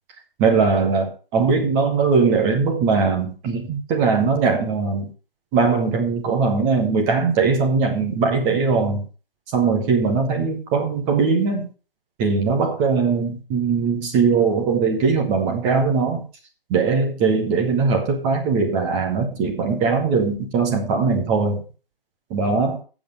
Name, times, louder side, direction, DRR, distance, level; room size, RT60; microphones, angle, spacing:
voice 1, 0.4-5.1 5.5-9.1 9.5-11.7 12.2-16.3 16.7-21.6 22.3-22.8, right 4 dB, 5° right, 2 dB, 0.6 m, -20 dB
7.6 x 7.1 x 6.5 m, 0.36 s
figure-of-eight pair, 155°, 29 cm